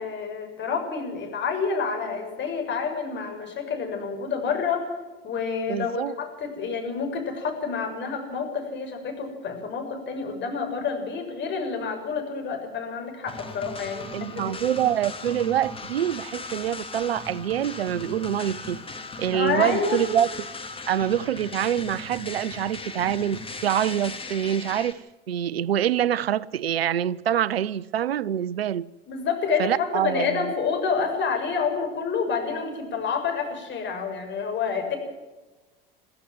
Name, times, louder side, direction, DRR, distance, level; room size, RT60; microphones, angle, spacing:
voice 1, 0.0-5.0 5.2-14.5 19.3-20.0 29.1-35.0, left 5 dB, 40° left, 6.9 m, -28 dB
voice 2, 5.7-6.1 14.1-18.8 19.2-20.3 20.9-25.0 25.3-28.9 29.6-30.5, right 10 dB, 85° right, 0.7 m, -25 dB
sound 1, 13.3-24.9, left 3 dB, 20° left, 2.6 m, -38 dB
22.5 x 15.5 x 7.6 m
hypercardioid pair, 80°, 29 cm